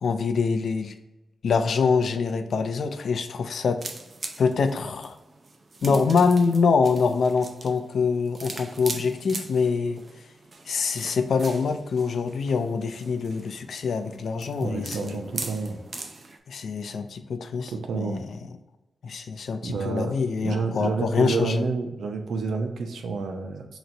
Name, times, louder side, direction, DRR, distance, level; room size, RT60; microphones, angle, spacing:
voice 1, 0.0-0.9 1.4-3.8 4.4-5.2 5.8-10.0 10.7-15.2 16.5-18.4 19.0-21.6, left 5 dB, 75° left, 8 dB, 0.5 m, -25 dB
sound 1, 3.8-16.4, right 3 dB, 45° right, 0.6 m, -40 dB
voice 2, 14.6-15.8 17.7-18.2 19.6-20.2 20.4-23.7, right 4 dB, 90° right, 5 dB, 0.6 m, -29 dB
3.9 x 3.0 x 4.4 m, 1.0 s
wide cardioid pair, 95°, 0 cm